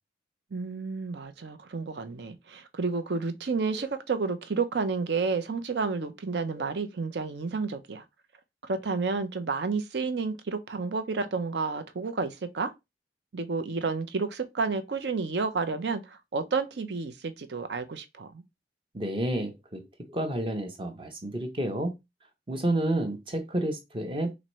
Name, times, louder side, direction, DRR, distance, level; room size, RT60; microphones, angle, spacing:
voice 1, 0.5-8.0 8.6-12.7 13.3-18.4, right 4 dB, 75° right, 0.6 m, -31 dB
voice 2, 18.9-22.0 22.5-24.3, right 1 dB, 30° right, 0.7 m, -30 dB
4.2 x 2.6 x 3.0 m
head